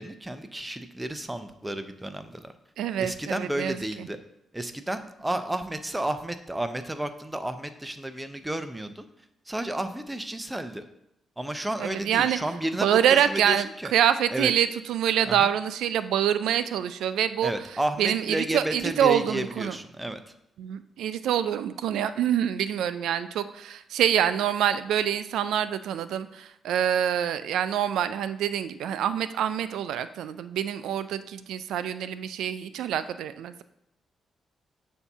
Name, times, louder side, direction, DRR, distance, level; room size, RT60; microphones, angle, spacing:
voice 1, 0.0-2.5 3.0-4.2 4.5-9.0 9.5-10.8 11.4-13.9 14.3-14.5 15.3-15.5 17.4-20.2, right 1 dB, 15° right, 9 dB, 0.6 m, -32 dB
voice 2, 2.8-4.1 11.8-12.4 12.8-13.7 13.9-17.5 18.0-19.8 20.6-33.6, right 9 dB, 85° right, 13 dB, 0.3 m, -26 dB
6.9 x 2.7 x 5.5 m, 0.81 s
supercardioid pair, 65°, 0 cm